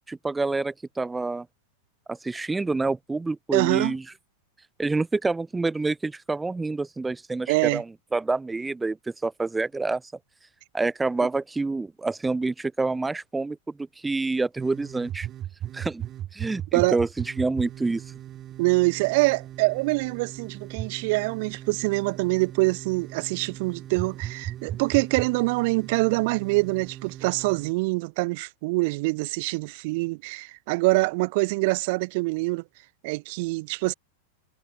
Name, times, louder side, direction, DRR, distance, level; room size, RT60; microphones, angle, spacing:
voice 1, 0.1-1.5 2.1-4.0 4.8-7.9 8.1-9.0 9.2-10.0 10.7-15.3 15.7-16.0 16.3-17.1 17.4-18.0, right 3 dB, 10° right, 1.0 m, -27 dB
voice 2, 3.5-3.9 7.5-7.8 16.7-17.0 18.6-32.6 33.0-33.9, right 26 dB, 50° right, 0.9 m, -25 dB
sound 1, 14.6-27.7, right 12 dB, 30° right, 2.1 m, -38 dB
figure-of-eight pair, 90°, 0 cm